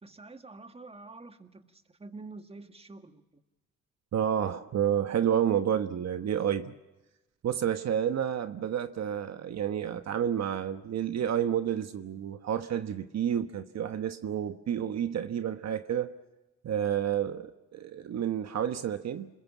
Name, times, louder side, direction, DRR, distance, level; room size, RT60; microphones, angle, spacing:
voice 1, 0.0-3.4, right 3 dB, 20° right, 1.8 m, -47 dB
voice 2, 4.1-6.7 7.4-16.1 16.6-19.3, right 9 dB, 60° right, 1.3 m, -30 dB
28.0 x 20.5 x 7.4 m
cardioid pair, 90°, 30 cm